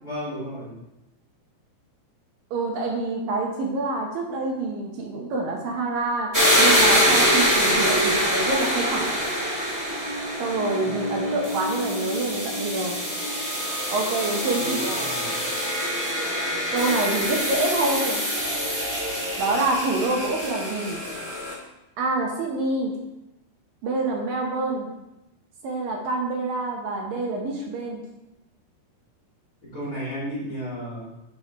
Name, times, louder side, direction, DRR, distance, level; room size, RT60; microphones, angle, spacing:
voice 1, 0.0-0.8 10.8-11.2 14.5-15.5 29.6-31.1, equal, 20° left, -8 dB, 3.3 m, -34 dB
voice 2, 2.5-9.3 10.4-13.0 13.9-15.1 16.7-18.2 19.4-21.0 22.0-23.0 23.8-24.9 25.6-28.0, right 2 dB, 70° right, 0 dB, 2.5 m, -27 dB
sound 1, 6.3-21.5, equal, 15° right, 0.6 m, -24 dB
8.0 x 5.5 x 4.6 m, 0.93 s
omnidirectional pair, 4.6 m